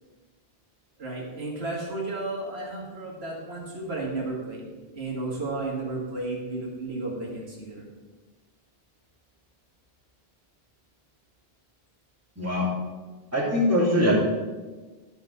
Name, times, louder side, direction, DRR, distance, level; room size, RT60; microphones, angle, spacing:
voice 1, 1.0-7.9, right 2 dB, 85° right, -2 dB, 2.2 m, -33 dB
voice 2, 13.3-14.1, left 1 dB, 15° right, -5 dB, 2.8 m, -22 dB
12.0 x 5.3 x 6.6 m, 1.3 s
omnidirectional pair, 1.0 m